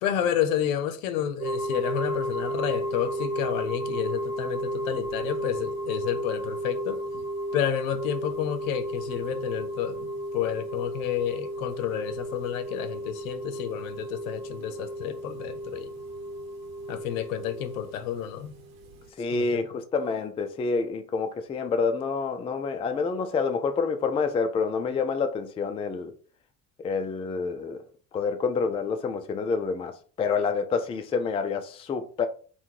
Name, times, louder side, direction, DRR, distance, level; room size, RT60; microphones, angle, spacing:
voice 1, 0.0-7.2 7.5-15.9 16.9-18.6 19.3-19.8, left 10 dB, 65° left, 0.7 m, -30 dB
sound 1, 1.4-19.1, right 1 dB, 70° right, 1.0 m, -33 dB
voice 2, 19.2-26.1 26.8-27.8 28.1-32.3, left 5 dB, 15° left, 0.4 m, -28 dB
3.6 x 2.3 x 4.5 m
figure-of-eight pair, 60°, 44 cm